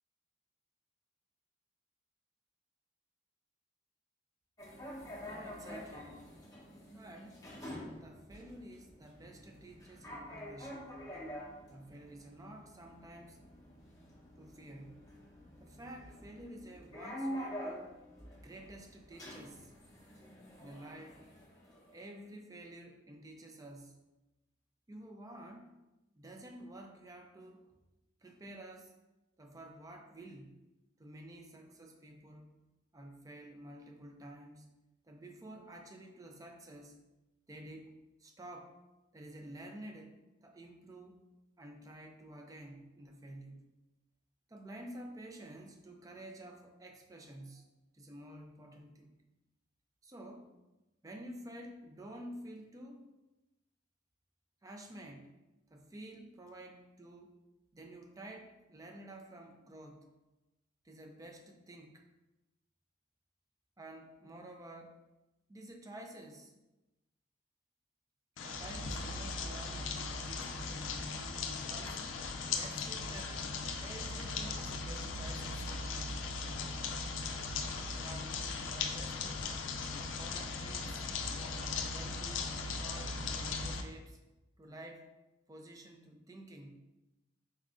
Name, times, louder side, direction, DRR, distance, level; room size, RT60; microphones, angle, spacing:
sound 1, 4.6-22.1, equal, 20° left, 0.8 m, -47 dB
voice 1, 5.3-6.2 6.9-7.5 8.0-10.9 11.7-13.4 14.4-15.0 15.6-18.1 18.4-19.7 20.6-21.2 21.9-24.0 24.9-25.7 26.1-27.8 28.2-28.9 29.4-30.6 31.0-32.6 32.9-34.7 35.0-37.0 37.5-37.9 38.2-38.8 39.1-41.3 41.6-43.6 44.5-47.7 47.9-49.2 50.0-50.5 51.0-53.1 54.6-55.3 55.7-57.4 57.7-60.1 60.8-62.1 63.8-65.0 65.5-66.5 68.4-72.1 72.5-73.4 73.8-75.7 78.0-78.4 78.7-79.5 80.2-81.1 81.7-84.2 84.6-85.1 85.5-86.8, right 1 dB, 20° right, 3 dB, 0.4 m, -51 dB
sound 2, 68.4-83.8, left 4 dB, 80° left, 0.4 m, -38 dB
4.2 x 2.5 x 3.5 m, 1.0 s
head